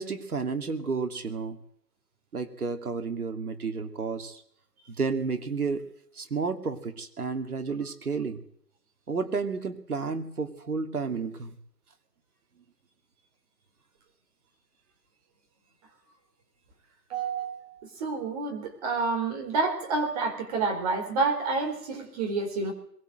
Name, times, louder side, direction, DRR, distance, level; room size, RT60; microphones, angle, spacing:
voice 1, 0.0-1.6 2.3-4.4 5.0-5.8 6.1-8.4 9.1-11.5, right 4 dB, 60° right, 6 dB, 2.8 m, -31 dB
voice 2, 17.1-22.7, right 4 dB, 20° right, 2 dB, 4.3 m, -29 dB
22.5 x 20.0 x 7.9 m, 0.68 s
figure-of-eight pair, 160°, 50 cm